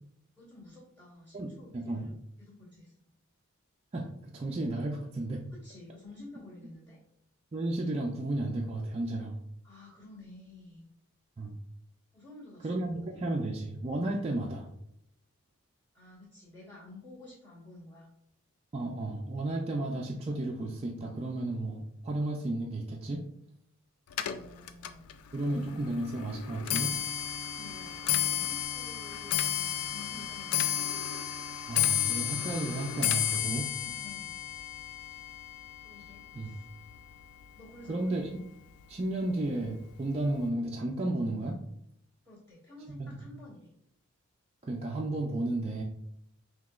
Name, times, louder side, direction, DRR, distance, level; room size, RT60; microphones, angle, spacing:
voice 1, 0.4-2.1 2.4-2.9 5.6-7.0 9.6-10.9 12.1-13.3 15.9-18.1 24.3-25.1 27.3-31.0 33.8-34.4 35.8-36.7 37.5-38.2 42.2-43.7, left 2 dB, 15° left, -11 dB, 1.5 m, -51 dB
voice 2, 1.3-2.1 3.9-5.4 7.5-9.4 11.4-11.6 12.6-14.7 18.7-23.2 25.3-26.9 31.7-33.7 36.3-36.5 37.9-38.3 38.9-41.6 42.9-43.3 44.6-45.8, right 2 dB, 30° right, -1 dB, 0.3 m, -33 dB
Clock, 24.1-37.4 37.8-38.2 39.0-39.1 39.5-39.8 40.1-40.2, left 11 dB, 90° left, 0.4 m, -33 dB
5.6 x 2.9 x 2.4 m, 0.74 s
head